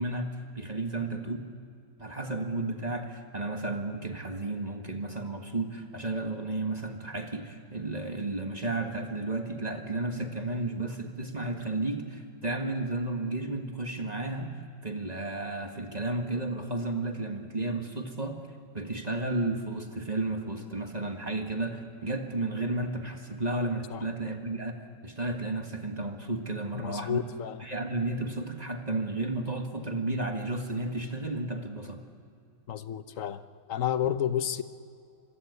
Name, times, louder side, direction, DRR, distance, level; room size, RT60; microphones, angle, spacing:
voice 1, 0.0-1.5 2.0-18.4 18.7-27.2 27.6-32.0, right 2 dB, 20° right, 4 dB, 1.7 m, -33 dB
voice 2, 26.7-27.6 32.7-33.4 33.7-34.6, left 10 dB, 65° left, 12 dB, 0.8 m, -31 dB
26.5 x 22.5 x 8.2 m, 2.4 s
omnidirectional pair, 2.4 m